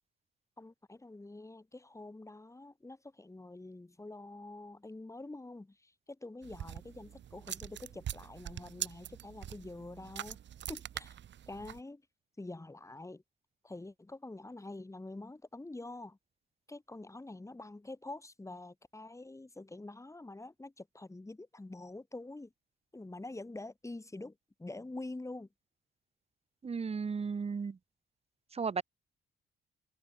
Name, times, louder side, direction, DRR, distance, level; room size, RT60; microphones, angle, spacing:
voice 1, 0.6-10.4 10.7-11.2 11.5-12.0 12.4-13.2 13.6-16.2 16.7-22.5 22.9-25.5, left 2 dB, 15° left, 6.7 m, -46 dB
sound 1, 6.4-11.8, right 10 dB, 65° right, 2.7 m, -44 dB
voice 2, 26.6-27.8 28.5-28.8, right 5 dB, 30° right, 1.3 m, -34 dB
cardioid pair, 90°, 20 cm